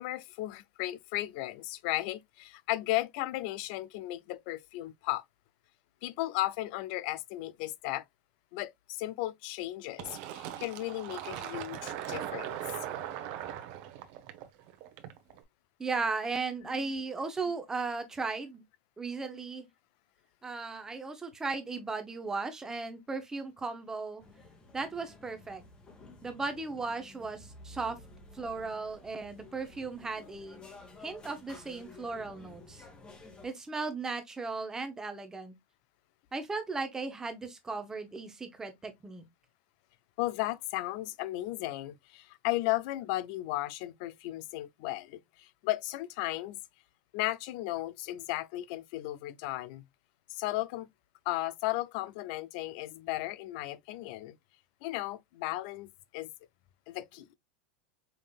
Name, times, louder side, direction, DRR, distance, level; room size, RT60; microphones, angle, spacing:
voice 1, 0.0-5.2 6.0-8.0 8.5-12.6 40.2-46.6 47.1-49.8 50.3-50.9 51.3-54.4 54.8-56.3 56.9-57.3, left 17 dB, 45° left, 0.4 m, -35 dB
Fill (with liquid), 10.0-15.4, right 11 dB, 45° right, 0.9 m, -40 dB
voice 2, 15.8-18.6 19.0-19.7 20.4-24.2 24.7-25.6 26.2-28.0 28.3-30.6 31.0-32.8 33.4-35.5 36.3-39.2, right 4 dB, 10° right, 0.8 m, -36 dB
sound 1, 24.2-33.5, left 2 dB, 15° left, 1.1 m, -52 dB
5.3 x 3.6 x 2.3 m
supercardioid pair, 165°, 6 cm